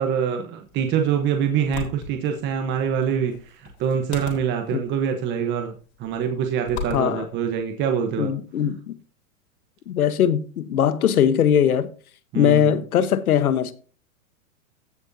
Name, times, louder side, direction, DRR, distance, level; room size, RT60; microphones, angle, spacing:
voice 1, 0.0-8.3 12.3-12.8, right 7 dB, 25° right, 1.1 m, -25 dB
sound 1, 0.6-8.2, left 5 dB, 50° left, 3.7 m, -40 dB
voice 2, 6.9-7.3 8.2-8.9 9.9-11.9 12.3-13.7, left 9 dB, 85° left, 1.3 m, -20 dB
16.0 x 6.3 x 2.8 m
hypercardioid pair, 140°, 43 cm